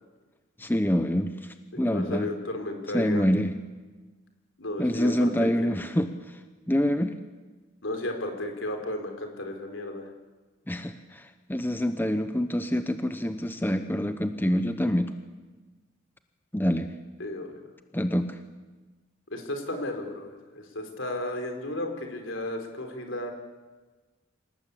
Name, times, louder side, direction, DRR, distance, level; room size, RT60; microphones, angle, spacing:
voice 1, 0.6-2.3 2.9-3.5 4.8-6.4 6.7-7.1 10.7-15.1 16.5-16.9 17.9-18.4, equal, 10° left, 8 dB, 0.9 m, -26 dB
voice 2, 1.7-3.2 4.6-5.5 7.8-10.1 17.2-17.7 19.3-23.3, left 1 dB, 70° left, 5 dB, 4.2 m, -34 dB
27.0 x 18.0 x 8.5 m, 1.3 s
head